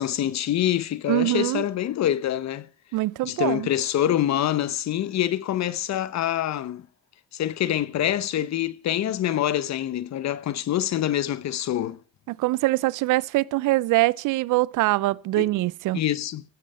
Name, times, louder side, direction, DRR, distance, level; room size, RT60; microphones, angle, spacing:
voice 1, 0.0-2.7 3.2-6.9 7.3-12.0 15.4-15.5 15.9-16.4, left 11 dB, 65° left, 0.8 m, -25 dB
voice 2, 1.1-1.6 2.9-3.7 12.3-16.0, right 19 dB, 85° right, 0.5 m, -23 dB
16.0 x 7.6 x 5.4 m
cardioid pair, 90°, 30 cm